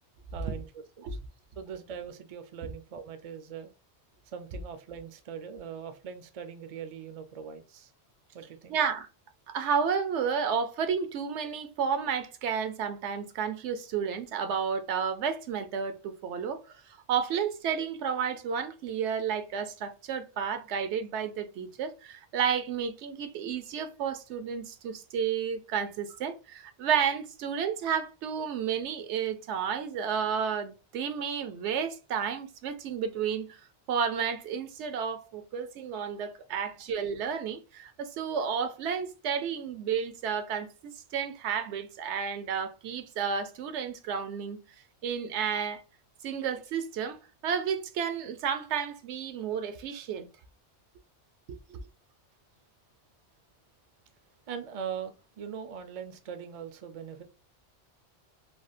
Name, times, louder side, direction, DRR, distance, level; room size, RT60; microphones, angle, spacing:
voice 1, 0.3-0.8 1.1-1.2 1.6-3.7 4.3-7.9 8.3-8.8 54.5-57.2, right 7 dB, 50° right, 0.4 m, -41 dB
voice 2, 8.7-9.1 9.5-16.6 16.9-33.6 33.9-44.6 45.0-45.8 46.2-50.3 51.5-51.8, right 7 dB, 80° right, 0.9 m, -31 dB
3.4 x 2.3 x 2.5 m
omnidirectional pair, 1.2 m